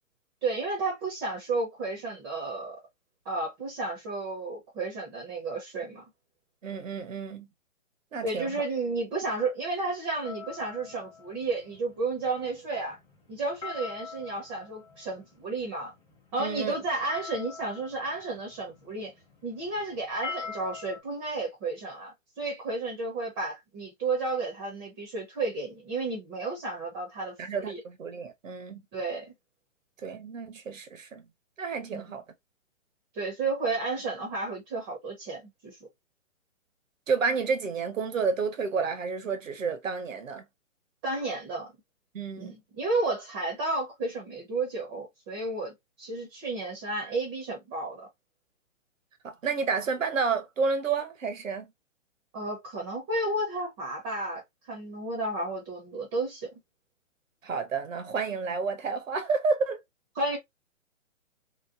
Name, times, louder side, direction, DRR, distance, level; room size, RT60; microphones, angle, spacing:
voice 1, 0.4-2.8 3.2-6.0 8.2-13.0 13.3-15.9 16.3-19.1 19.4-27.8 28.9-29.3 31.9-32.1 33.1-35.8 41.0-41.7 42.4-48.1 52.3-54.4 54.7-56.6 60.2-60.4, right 3 dB, 20° right, 0.7 m, -32 dB
voice 2, 6.6-7.5 8.1-8.5 16.4-16.7 27.4-28.8 30.0-31.2 31.6-32.2 37.1-40.4 42.1-42.5 49.2-51.7 57.4-59.8, right 5 dB, 75° right, 0.9 m, -30 dB
sound 1, 10.2-21.0, left 5 dB, 10° left, 0.8 m, -45 dB
3.0 x 2.1 x 2.4 m
figure-of-eight pair, 135°, 39 cm